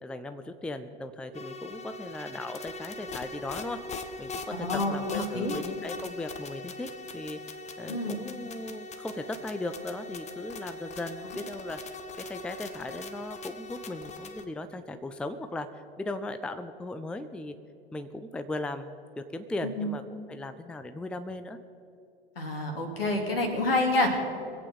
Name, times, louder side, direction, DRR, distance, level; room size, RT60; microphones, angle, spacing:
voice 1, 0.0-3.8 4.2-7.4 7.8-11.8 12.2-17.5 17.9-18.9 19.2-20.0 20.3-21.6, left 2 dB, 5° left, 10 dB, 0.5 m, -37 dB
sound 1, 1.3-14.4, left 3 dB, 25° left, 1.0 m, -41 dB
voice 2, 4.5-5.6 7.9-8.2 19.6-19.9 22.4-24.2, left 2 dB, 75° left, 3 dB, 2.6 m, -28 dB
22.5 x 8.4 x 5.4 m, 2.7 s
figure-of-eight pair, 85°, 29 cm